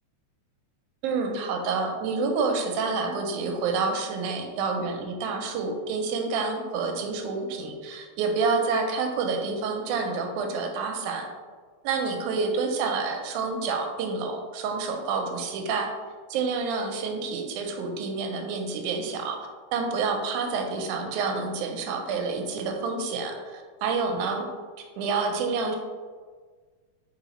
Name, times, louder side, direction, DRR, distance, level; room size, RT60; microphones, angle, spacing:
voice 1, 1.0-11.3 11.8-15.9 16.3-24.5 25.0-25.8, right 4 dB, 85° right, 3 dB, 2.0 m, -28 dB
4.5 x 3.9 x 3.0 m, 1.5 s
omnidirectional pair, 3.5 m